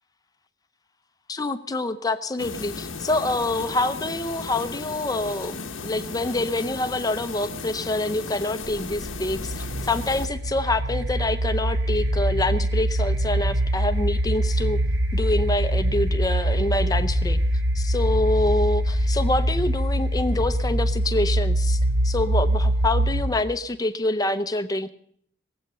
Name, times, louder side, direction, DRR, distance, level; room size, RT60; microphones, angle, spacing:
voice 1, 1.3-14.8 15.1-17.4 17.7-21.8 22.0-24.9, left 2 dB, 20° left, 11 dB, 0.7 m, -26 dB
sound 1, 2.4-10.3, left 4 dB, 90° left, 1.1 m, -35 dB
sound 2, 8.6-23.5, right 1 dB, 75° right, 1.3 m, -24 dB
19.5 x 8.1 x 6.7 m, 0.68 s
head